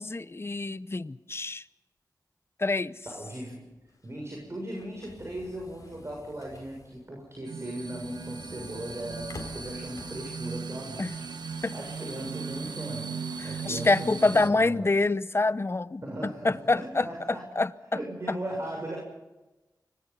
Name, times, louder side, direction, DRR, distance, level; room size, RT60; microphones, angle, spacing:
voice 1, 0.0-1.6 2.6-2.9 11.0-11.1 11.6-11.7 13.4-16.0 16.4-17.1 17.6-17.7, left 3 dB, 35° left, 0.8 m, -26 dB
voice 2, 3.1-3.7 4.0-11.3 11.6-13.2 13.4-14.9 16.0-17.6 17.9-19.0, right 1 dB, 40° right, 7.0 m, -38 dB
sound 1, 3.9-10.4, left 2 dB, 55° left, 4.5 m, -49 dB
sound 2, 7.4-14.5, right 5 dB, 80° right, 1.2 m, -38 dB
25.5 x 20.5 x 5.6 m
cardioid pair, 45°, 7 cm